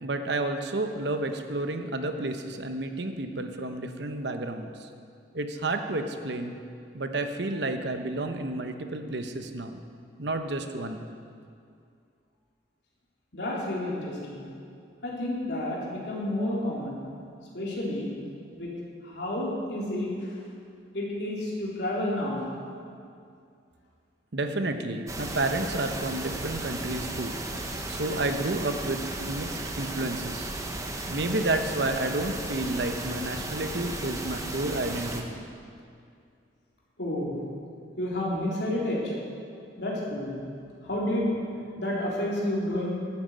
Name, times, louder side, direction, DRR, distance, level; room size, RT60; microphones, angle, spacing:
voice 1, 0.0-4.9 5.3-6.6 6.9-9.8 10.2-11.1 24.3-27.3 27.9-30.5 31.1-35.4, right 2 dB, 65° right, 6 dB, 1.0 m, -31 dB
voice 2, 13.3-14.5 15.0-17.0 17.5-18.1 18.5-18.7 19.0-20.3 20.9-22.5 37.0-37.4 38.0-39.1 39.8-40.4 40.8-41.3 41.8-42.9, left 1 dB, 65° left, -5 dB, 3.6 m, -30 dB
sound 1, 25.1-35.2, right 2 dB, 15° right, 1.0 m, -35 dB
12.0 x 9.1 x 9.1 m, 2.4 s
head